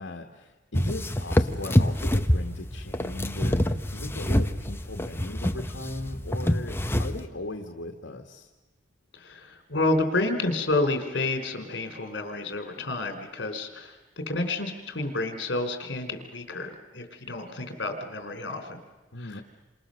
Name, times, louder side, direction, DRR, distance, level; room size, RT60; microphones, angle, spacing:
voice 1, 0.0-8.5 19.1-19.4, left 2 dB, 85° left, 4 dB, 1.7 m, -38 dB
sound 1, 0.7-7.3, equal, 15° left, 0.9 m, -26 dB
voice 2, 9.1-14.0 14.3-18.8 19.2-19.4, left 2 dB, 70° left, 7 dB, 3.7 m, -29 dB
28.0 x 27.0 x 6.5 m, 1.2 s
head